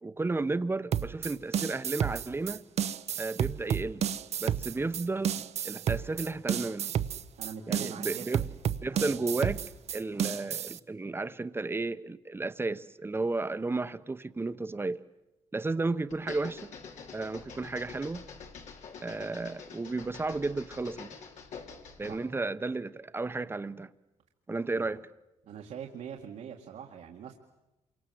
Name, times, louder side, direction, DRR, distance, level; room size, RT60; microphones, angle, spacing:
voice 1, 0.0-2.6 3.2-4.1 4.4-6.9 7.7-8.4 8.8-9.6 9.9-15.0 15.5-16.7 17.1-18.3 19.0-21.2 22.0-23.9 24.5-25.1, right 3 dB, 20° right, 0.9 m, -33 dB
sound 1, 0.9-10.8, right 9 dB, 65° right, 0.9 m, -31 dB
voice 2, 7.4-8.5 8.9-9.3 22.1-22.2 24.7-24.9 25.4-27.3, right 8 dB, 80° right, 2.0 m, -43 dB
sound 2, 16.1-22.2, left 5 dB, 85° left, 3.5 m, -46 dB
28.0 x 24.5 x 7.8 m
cardioid pair, 105°, 12 cm